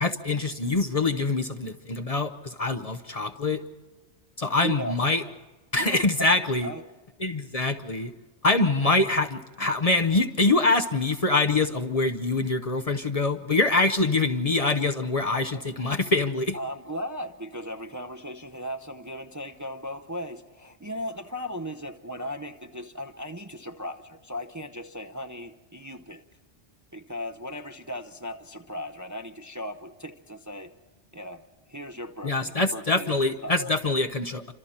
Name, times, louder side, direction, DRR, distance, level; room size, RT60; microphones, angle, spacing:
voice 1, 0.0-3.6 4.4-5.2 5.7-6.7 7.2-8.1 8.4-16.6 32.2-34.5, left 3 dB, 35° left, 6 dB, 0.8 m, -24 dB
voice 2, 4.6-5.0 5.8-6.0 6.6-6.9 15.5-15.6 16.5-26.2 26.9-30.7 31.1-31.4 31.7-33.1 33.4-33.7, equal, 20° right, 6 dB, 0.6 m, -37 dB
28.5 x 26.0 x 4.3 m, 1.2 s
omnidirectional pair, 1.1 m